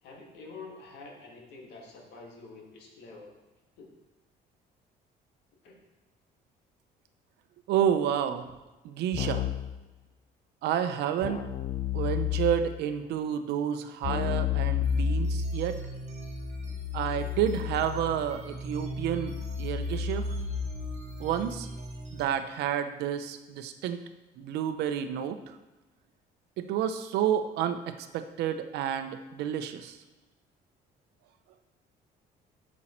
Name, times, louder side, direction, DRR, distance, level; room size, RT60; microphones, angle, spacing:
voice 1, 0.0-3.3 3.8-3.9 5.6-5.8, left 3 dB, 85° left, 0 dB, 1.9 m, -47 dB
voice 2, 7.7-8.5 8.8-9.4 10.6-11.4 11.9-15.8 16.9-20.3 21.2-21.7 22.1-24.0 24.4-25.4 26.6-30.0, right 9 dB, 80° right, 9 dB, 0.7 m, -30 dB
Keyboard (musical), 9.1-9.8 11.2-12.8 14.0-21.1, left 15 dB, 45° left, 0.5 m, -33 dB
sound 1, 14.8-22.2, right 6 dB, 40° right, 1.6 m, -38 dB
8.1 x 6.3 x 4.4 m, 1.1 s
cardioid pair, 110°, 17 cm